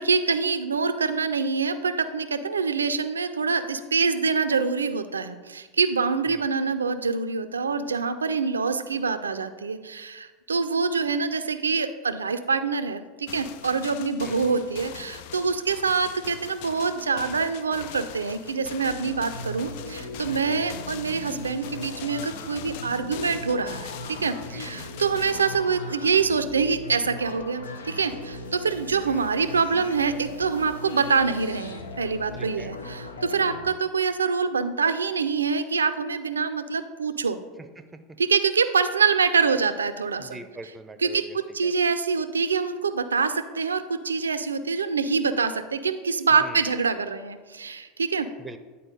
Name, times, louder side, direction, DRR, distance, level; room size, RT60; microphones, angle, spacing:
voice 1, 0.0-37.4 38.2-40.4 41.0-41.2 41.5-48.3, right 5 dB, 90° right, 11 dB, 0.4 m, -25 dB
sound 1, 13.3-25.6, left 10 dB, 65° left, 0.4 m, -42 dB
voice 2, 14.2-14.6 20.4-20.6 24.5-24.9 29.0-29.3 32.4-32.7 37.8-37.9 40.2-41.9 46.4-46.6 48.4-48.6, right 2 dB, 15° right, 10 dB, 0.7 m, -43 dB
sound 2, 18.9-33.6, left 1 dB, 85° left, 0.8 m, -38 dB
9.0 x 4.3 x 5.2 m, 1.3 s
hypercardioid pair, 85°, 0 cm